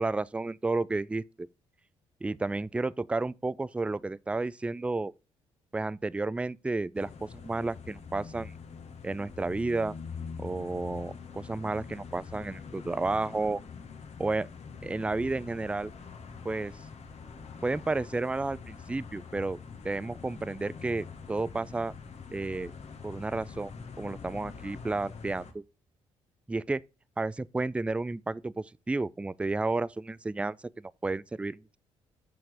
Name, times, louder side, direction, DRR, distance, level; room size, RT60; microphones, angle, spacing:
voice 1, 0.0-1.5 2.2-5.1 5.7-8.5 9.0-9.9 10.4-13.6 14.2-14.5 14.8-15.9 16.4-16.7 17.6-19.6 19.8-21.9 22.3-22.7 23.0-23.7 24.0-25.6 26.5-26.8 27.2-31.8, right 3 dB, 10° right, 0.3 m, -32 dB
sound 1, 6.9-25.5, left 5 dB, 45° left, 1.4 m, -44 dB
7.6 x 5.9 x 3.6 m
figure-of-eight pair, 45°, 15 cm